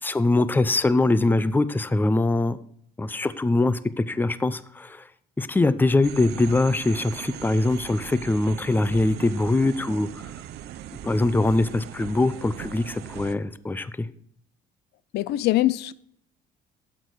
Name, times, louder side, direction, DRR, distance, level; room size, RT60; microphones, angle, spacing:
voice 1, 0.0-2.6 3.0-5.1 5.4-10.1 11.0-14.1, left 2 dB, 10° left, 0.6 m, -23 dB
sound 1, 6.0-13.3, right 12 dB, 75° right, 0.7 m, -39 dB
voice 2, 15.1-15.9, left 16 dB, 80° left, 0.5 m, -22 dB
12.0 x 8.2 x 4.8 m
cardioid pair, 110°, 17 cm